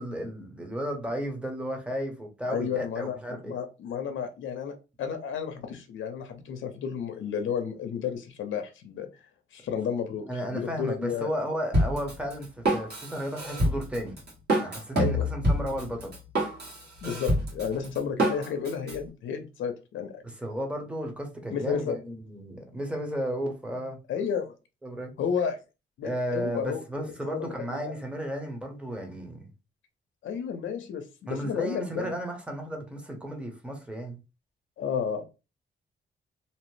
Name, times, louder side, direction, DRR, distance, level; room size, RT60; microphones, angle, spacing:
voice 1, 0.0-3.6 10.3-14.2 14.6-16.1 20.2-24.0 24.8-25.1 26.0-29.5 31.3-34.2, equal, 5° right, 0.8 m, -34 dB
voice 2, 2.5-9.3 9.5-11.3 14.9-15.3 17.0-20.2 21.5-22.0 24.1-24.6 25.2-25.6 26.0-27.9 30.2-32.1 34.8-35.3, left 7 dB, 75° left, 0.5 m, -32 dB
Drum kit, 11.7-19.0, right 1 dB, 55° right, 1.4 m, -27 dB
2.7 x 2.0 x 3.1 m
cardioid pair, 105°, 20 cm